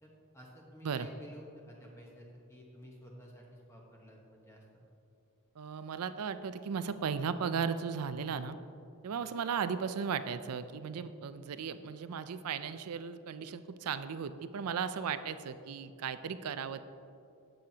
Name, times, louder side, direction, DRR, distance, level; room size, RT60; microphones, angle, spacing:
voice 1, 0.0-4.8, equal, 10° left, -2 dB, 1.0 m, -53 dB
voice 2, 5.6-8.6 9.0-16.8, right 6 dB, 90° right, 12 dB, 0.4 m, -36 dB
11.5 x 7.7 x 2.9 m, 2.6 s
head